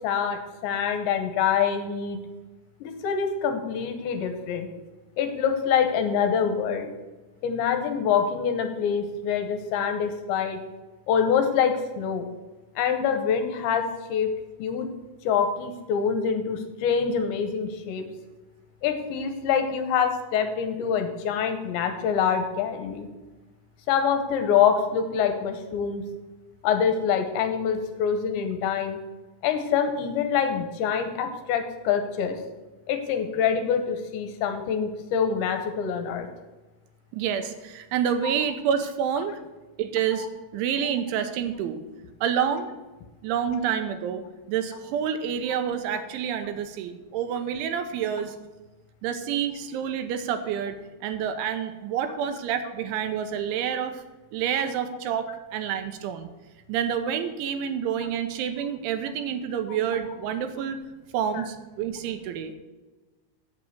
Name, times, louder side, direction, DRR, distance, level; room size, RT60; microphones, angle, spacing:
voice 1, 0.0-2.2 2.8-4.7 5.2-6.9 7.4-10.6 11.1-12.3 12.8-14.3 14.6-14.9 15.2-18.1 18.8-23.1 23.9-26.0 26.6-29.0 29.4-32.4 32.9-36.3 40.1-40.3, left 7 dB, 80° left, 7 dB, 3.0 m, -25 dB
voice 2, 37.1-39.4 39.8-40.3 40.5-41.8 42.2-42.7 43.2-48.4 49.0-50.8 51.0-54.0 54.3-56.3 56.7-60.8 61.1-62.5, right 8 dB, 80° right, 8 dB, 3.1 m, -28 dB
8.5 x 7.4 x 8.0 m, 1.2 s
omnidirectional pair, 5.6 m